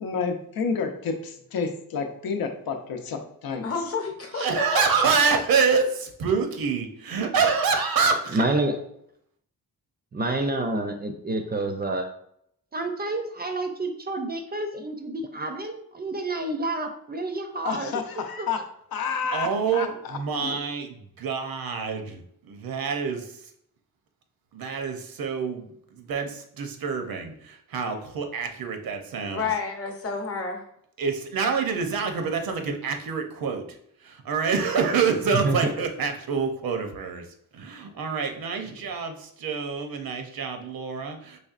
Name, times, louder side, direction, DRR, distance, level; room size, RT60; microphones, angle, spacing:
voice 1, 0.0-3.6 17.6-18.6 18.9-20.6, left 5 dB, 85° left, 5 dB, 0.6 m, -30 dB
voice 2, 3.6-5.0 29.3-30.6, left 4 dB, 40° left, 2 dB, 0.8 m, -30 dB
voice 3, 4.4-8.4 19.3-23.3 24.5-29.4 31.0-33.8 34.0-37.2 37.5-41.4, right 5 dB, 80° right, 5 dB, 0.7 m, -27 dB
voice 4, 8.3-8.7 10.1-12.1 12.7-17.9 18.4-18.5 35.3-35.6, right 2 dB, 30° right, 6 dB, 0.4 m, -28 dB
4.1 x 3.1 x 2.4 m, 0.71 s
wide cardioid pair, 125°, 35 cm